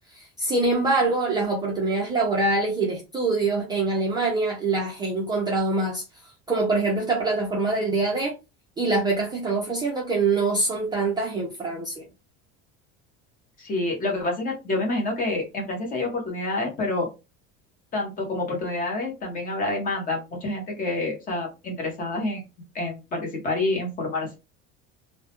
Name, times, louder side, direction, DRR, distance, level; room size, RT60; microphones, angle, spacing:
voice 1, 0.1-6.0 6.5-8.3 8.8-12.0, right 3 dB, 15° right, 0.3 m, -24 dB
voice 2, 13.6-17.1 17.9-22.4 22.7-24.4, left 2 dB, 25° left, 0.8 m, -28 dB
2.2 x 2.0 x 2.8 m
cardioid pair, 165°, 30 cm